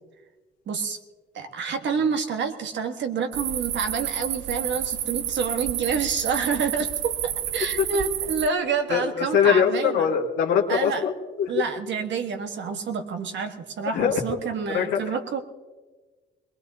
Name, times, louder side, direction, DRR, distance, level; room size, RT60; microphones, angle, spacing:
voice 1, 0.7-1.0 1.3-9.9 10.7-11.0 11.5-15.4, right 5 dB, 65° right, 6 dB, 1.5 m, -28 dB
sound 1, 3.3-8.5, right 11 dB, 85° right, 0.7 m, -30 dB
voice 2, 8.9-11.6 13.9-14.2 14.7-15.0, left 7 dB, 90° left, -1 dB, 1.8 m, -22 dB
21.5 x 20.5 x 2.8 m, 1.3 s
cardioid pair, 90°, 20 cm